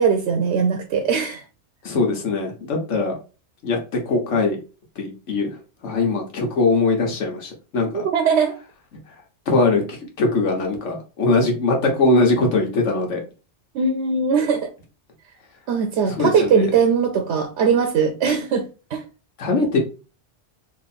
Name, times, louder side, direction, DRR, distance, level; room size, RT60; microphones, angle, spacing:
voice 1, 0.0-1.4 7.9-8.6 13.7-14.7 15.7-19.0, right 6 dB, 75° right, 0.9 m, -20 dB
voice 2, 1.8-3.1 3.6-3.8 4.1-4.6 5.0-5.5 5.8-8.0 9.5-13.2 16.2-16.6 19.4-19.8, left 3 dB, 85° left, 1.4 m, -21 dB
3.1 x 2.9 x 4.1 m
omnidirectional pair, 1.2 m